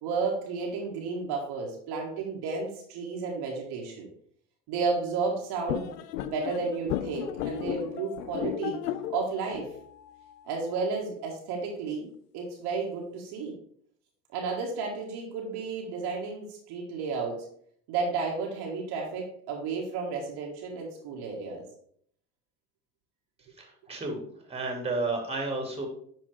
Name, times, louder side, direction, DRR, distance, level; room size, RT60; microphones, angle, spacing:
voice 1, 0.0-4.1 4.7-5.9 6.2-8.8 9.1-9.7 10.4-13.6 14.3-17.4 17.9-21.6, right 4 dB, 55° right, -1 dB, 1.6 m, -32 dB
sound 1, 5.7-10.8, left 12 dB, 80° left, 0.6 m, -35 dB
voice 2, 23.6-24.2 24.5-25.9, right 3 dB, 10° right, 2 dB, 2.1 m, -32 dB
10.5 x 4.0 x 3.3 m, 0.63 s
hypercardioid pair, 70°, 48 cm